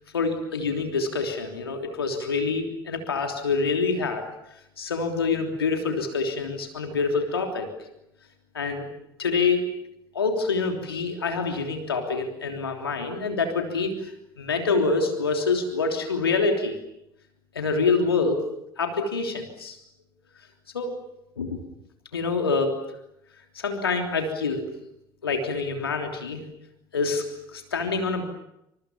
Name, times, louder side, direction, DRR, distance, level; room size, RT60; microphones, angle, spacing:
voice 1, 0.1-4.2 4.8-7.7 8.5-8.9 9.2-9.6 10.1-14.1 14.4-16.8 17.5-18.4 18.8-19.8 20.7-21.0 21.4-21.6 22.1-22.7 23.5-24.6 25.2-26.4 26.9-28.2, left 4 dB, 75° left, 5 dB, 3.2 m, -26 dB
28.0 x 26.5 x 7.2 m, 0.83 s
figure-of-eight pair, 60°, 13 cm